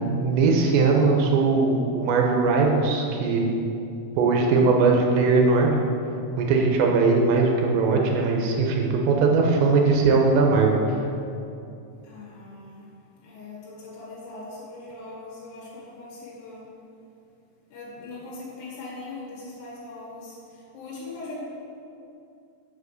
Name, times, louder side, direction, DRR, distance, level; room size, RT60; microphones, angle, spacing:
voice 1, 0.1-3.5 4.2-5.8 6.4-10.8, right 4 dB, 85° right, 0 dB, 3.1 m, -20 dB
voice 2, 12.0-12.9 13.2-16.7 17.7-20.4 20.7-21.4, left 2 dB, 70° left, -6 dB, 3.8 m, -40 dB
7.4 x 6.7 x 6.6 m, 2.6 s
omnidirectional pair, 5.2 m